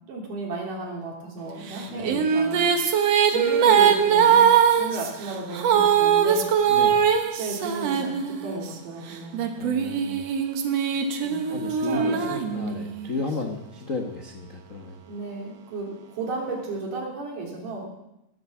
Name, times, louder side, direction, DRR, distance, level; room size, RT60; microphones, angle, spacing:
voice 1, 0.1-2.6 3.2-4.5 4.8-6.4 7.4-8.1 8.4-9.4 11.2-12.3 15.1-17.9, right 3 dB, 80° right, -2 dB, 4.9 m, -33 dB
sound 1, 1.7-8.7 9.3-13.1, right 8 dB, 60° right, 2.0 m, -21 dB
voice 2, 6.7-7.0 9.6-10.3 10.9-11.0 11.5-15.0, left 3 dB, 80° left, 2 dB, 0.7 m, -33 dB
18.0 x 8.2 x 7.3 m, 0.88 s
omnidirectional pair, 3.7 m